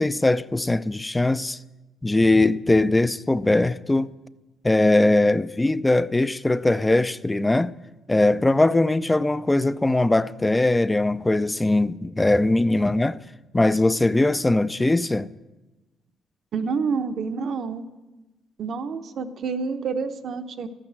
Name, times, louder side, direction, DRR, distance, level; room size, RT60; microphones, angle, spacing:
voice 1, 0.0-1.6 2.0-4.1 4.6-7.7 8.1-13.2 13.5-15.3, left 2 dB, 15° left, 0.4 m, -20 dB
voice 2, 16.5-17.9 18.6-20.7, right 5 dB, 60° right, 0.8 m, -28 dB
13.5 x 9.0 x 7.5 m
cardioid pair, 90°, 0 cm